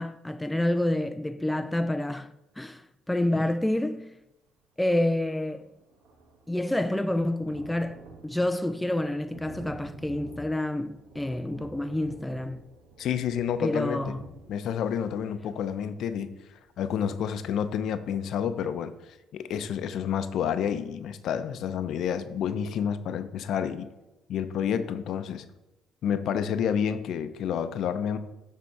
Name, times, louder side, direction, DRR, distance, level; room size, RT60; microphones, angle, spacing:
voice 1, 0.0-4.2 4.8-5.7 6.5-12.7 13.6-14.2, left 1 dB, 5° left, 0.3 m, -28 dB
Thunder, 5.2-17.9 18.4-18.5 18.8-18.9, right 2 dB, 75° right, 1.2 m, -50 dB
voice 2, 13.0-14.1 14.5-16.3 16.8-18.9 19.3-23.9 24.3-25.4 26.0-28.2, left 8 dB, 65° left, 0.6 m, -29 dB
7.6 x 3.7 x 5.8 m
cardioid pair, 90°, 0 cm